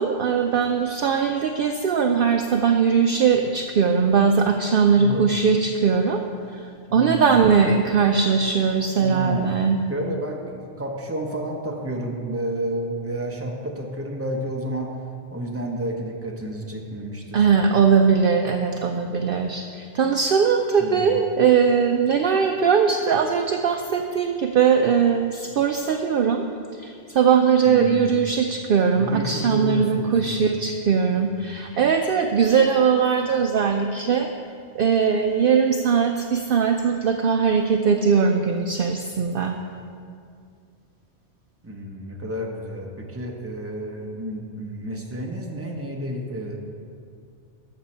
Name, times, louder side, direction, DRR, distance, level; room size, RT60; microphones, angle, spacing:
voice 1, 0.0-6.2 6.5-6.6 6.9-9.8 17.3-26.4 26.8-34.3 34.7-39.6, right 6 dB, 60° right, 5 dB, 0.7 m, -20 dB
voice 2, 6.9-7.4 9.0-9.5 9.9-14.9 15.3-17.5 20.8-21.1 27.6-28.1 29.0-30.5 31.2-31.4 41.6-46.6, right 1 dB, 15° right, 0 dB, 1.0 m, -30 dB
13.0 x 6.8 x 4.4 m, 2.3 s
omnidirectional pair, 1.2 m